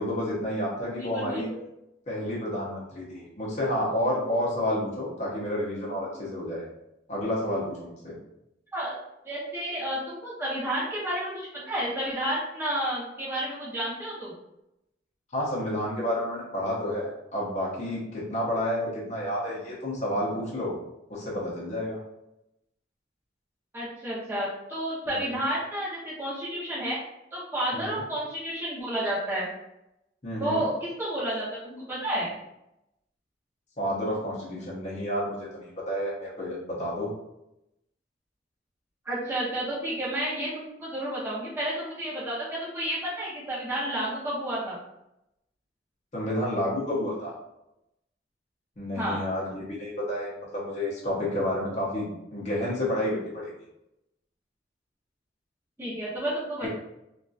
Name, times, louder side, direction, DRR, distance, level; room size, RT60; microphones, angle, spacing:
voice 1, 0.0-1.5 2.1-6.7 7.1-8.2 15.3-20.8 21.1-22.0 25.1-25.2 27.7-28.0 30.2-30.6 33.8-37.1 46.1-47.3 48.8-53.5, left 1 dB, 40° left, -5 dB, 0.6 m, -30 dB
voice 2, 1.0-1.6 8.7-9.0 9.2-14.3 23.7-27.0 27.3-29.5 30.4-32.3 39.0-44.8 48.9-49.2 55.8-56.7, right 1 dB, 15° right, -9 dB, 0.6 m, -31 dB
2.6 x 2.3 x 2.3 m, 0.87 s
head